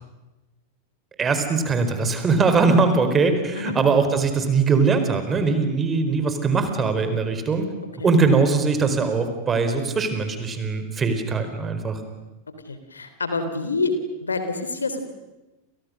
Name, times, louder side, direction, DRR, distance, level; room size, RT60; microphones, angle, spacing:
voice 1, 1.2-7.7 8.0-12.0, right 4 dB, 20° right, 8 dB, 4.5 m, -21 dB
voice 2, 12.7-13.9 14.2-15.0, left 3 dB, 75° left, 9 dB, 3.4 m, -27 dB
30.0 x 29.5 x 6.6 m, 1.1 s
figure-of-eight pair, 90°, 0 cm